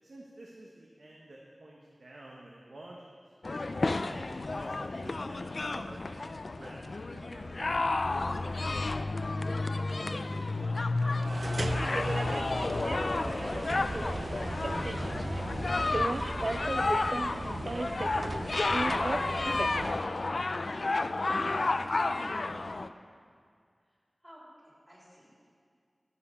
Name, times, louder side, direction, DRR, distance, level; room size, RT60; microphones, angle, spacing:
voice 1, 0.0-3.3 4.0-7.8 8.1-9.6 10.0-12.3 13.2-17.3 17.7-22.9, right 1 dB, 75° right, -2 dB, 1.1 m, -51 dB
sound 1, 3.4-22.9, left 3 dB, 65° left, 0.3 m, -31 dB
sound 2, 11.2-20.1, right 2 dB, 50° right, 0.4 m, -35 dB
voice 2, 24.2-25.5, equal, 5° right, -6 dB, 3.6 m, -55 dB
14.5 x 5.7 x 7.0 m, 2.1 s
wide cardioid pair, 75°, 0 cm